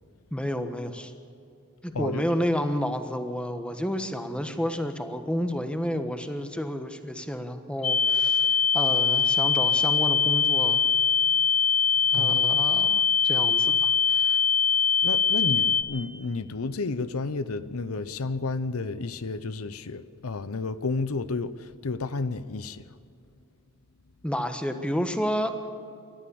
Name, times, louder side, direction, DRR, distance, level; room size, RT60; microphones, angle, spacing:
voice 1, 0.3-1.1 1.8-10.8 12.1-14.4 24.2-25.5, equal, 5° left, 1.3 m, -30 dB
voice 2, 1.9-2.2 12.1-12.7 15.0-22.9, left 3 dB, 85° left, 0.8 m, -31 dB
sound 1, 7.8-15.8, left 6 dB, 35° left, 1.4 m, -22 dB
28.5 x 13.0 x 7.1 m
head